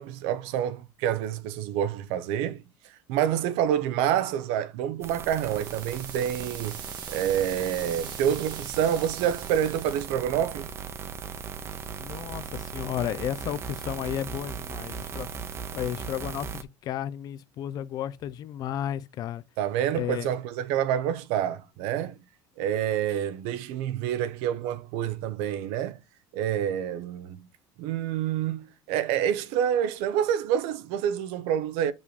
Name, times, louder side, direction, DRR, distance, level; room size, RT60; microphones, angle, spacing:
voice 1, 0.0-2.6 3.1-6.8 7.1-10.7 19.6-22.2 22.6-26.0 26.3-27.5 27.8-31.9, right 10 dB, 70° right, 0.7 m, -27 dB
sound 1, 5.0-16.6, right 6 dB, 25° right, 0.6 m, -38 dB
sound 2, 5.2-10.2, right 8 dB, 45° right, 1.3 m, -43 dB
voice 2, 12.0-15.3 15.7-19.4 19.9-20.3, left 11 dB, 40° left, 0.5 m, -33 dB
6.8 x 5.3 x 3.2 m
cardioid pair, 165°, 10 cm